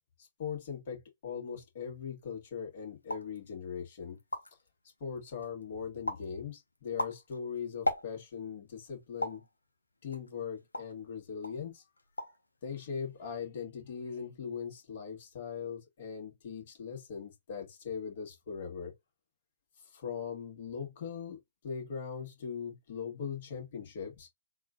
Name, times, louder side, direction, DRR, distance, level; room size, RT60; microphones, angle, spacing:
voice 1, 0.4-4.2 5.0-9.4 10.0-11.8 12.6-18.9 19.9-21.4 21.6-24.3, left 6 dB, 50° left, 1.8 m, -40 dB
sound 1, 3.0-3.4 3.9-4.0 4.2-4.7 5.2-5.6 6.1-6.3 6.8-8.4 9.2-9.5 10.1-11.0 11.4-11.6 12.0-12.5 12.7-13.2, left 1 dB, 90° left, 0.8 m, -37 dB
3.7 x 2.6 x 3.6 m
figure-of-eight pair, 120°, 0 cm